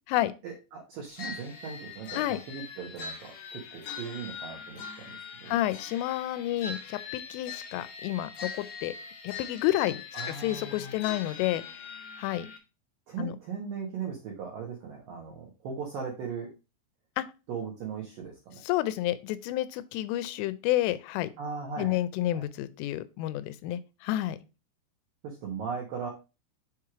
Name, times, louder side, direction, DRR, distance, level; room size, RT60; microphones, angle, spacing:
voice 1, 0.4-5.6 10.1-10.9 13.1-16.5 17.5-18.6 21.4-22.0 22.3-22.4 25.2-26.1, right 6 dB, 80° right, -1 dB, 2.0 m, -38 dB
sound 1, 1.2-12.6, left 6 dB, 70° left, 2.2 m, -42 dB
voice 2, 5.5-8.9 9.2-11.6 12.2-12.5 13.2-13.4 17.2-17.3 18.6-21.3 21.8-24.4, left 14 dB, 85° left, 13 dB, 3.1 m, -30 dB
7.2 x 3.1 x 4.7 m, 0.29 s
omnidirectional pair, 5.7 m